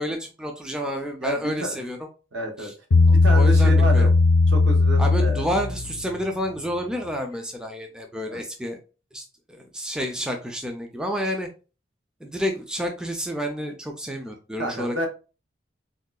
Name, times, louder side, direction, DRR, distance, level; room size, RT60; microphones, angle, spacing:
voice 1, 0.0-2.0 2.6-2.7 3.1-4.1 5.0-8.8 9.1-11.5 12.2-15.1, equal, 5° right, 3 dB, 0.3 m, -30 dB
voice 2, 1.2-1.8 2.3-2.7 3.2-4.1 4.5-5.4 8.3-8.4 14.6-15.1, right 1 dB, 80° right, 3 dB, 0.9 m, -29 dB
Bass guitar, 2.9-6.3, left 3 dB, 75° left, 0.5 m, -18 dB
3.7 x 2.3 x 2.2 m, 0.33 s
head